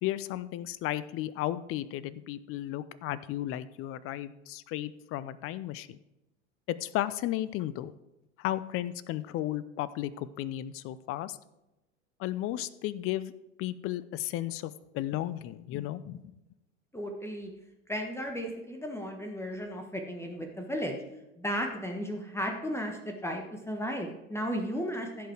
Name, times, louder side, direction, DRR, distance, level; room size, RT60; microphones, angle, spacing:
voice 1, 0.0-6.0 6.7-7.9 8.4-11.4 12.2-13.3 13.6-16.2, left 14 dB, 40° left, 17 dB, 0.6 m, -34 dB
voice 2, 16.9-17.5 17.9-20.9 21.4-25.3, equal, 5° left, 3 dB, 1.4 m, -34 dB
15.5 x 5.2 x 4.6 m, 0.94 s
figure-of-eight pair, 80°, 35 cm